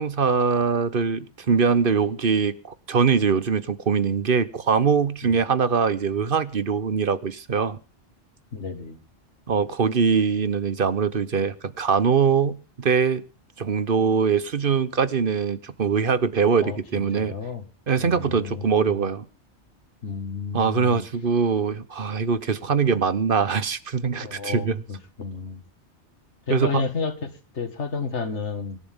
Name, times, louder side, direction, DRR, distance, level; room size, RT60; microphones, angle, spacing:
voice 1, 0.0-7.8 9.5-13.2 13.6-17.3 17.9-19.3 20.5-24.8 26.5-26.8, right 6 dB, 50° right, 1.2 m, -22 dB
voice 2, 8.5-9.0 16.6-17.6 18.0-19.0 20.0-21.0 24.2-25.6 26.5-28.8, left 4 dB, 80° left, 2.2 m, -31 dB
24.5 x 11.5 x 3.7 m
omnidirectional pair, 1.2 m